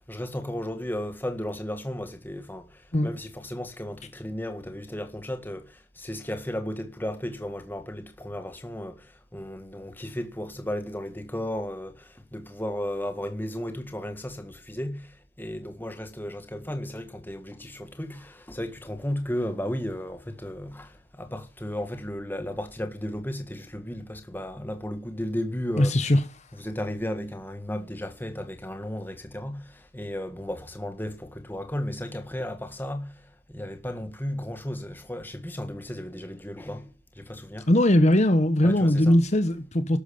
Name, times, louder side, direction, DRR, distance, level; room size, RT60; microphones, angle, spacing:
voice 1, 0.0-26.0 26.5-37.7 38.6-39.2, left 1 dB, 10° left, 1.8 m, -34 dB
voice 2, 25.8-26.2 37.7-40.0, left 1 dB, 40° left, 1.1 m, -20 dB
13.0 x 12.0 x 7.2 m
head